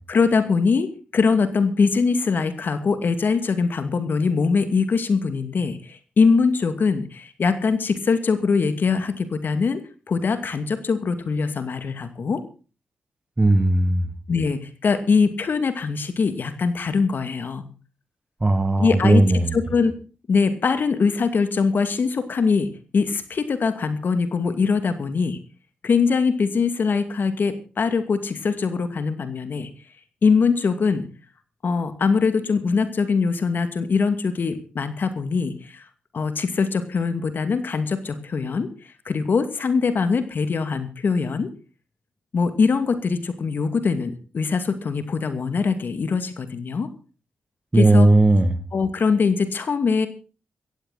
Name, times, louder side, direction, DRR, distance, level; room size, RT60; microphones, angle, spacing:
voice 1, 0.1-12.4 14.3-17.6 18.8-19.2 19.5-19.9 20.3-25.4 25.8-29.7 30.2-31.0 31.6-35.8 36.1-38.7 39.1-41.5 42.3-46.9 47.7-48.1 48.7-50.1, left 5 dB, 65° left, 10 dB, 2.4 m, -22 dB
voice 2, 13.4-14.0 18.4-19.5 47.7-48.6, right 2 dB, 30° right, 11 dB, 2.3 m, -17 dB
15.5 x 15.0 x 4.2 m, 0.35 s
supercardioid pair, 45°, 4 cm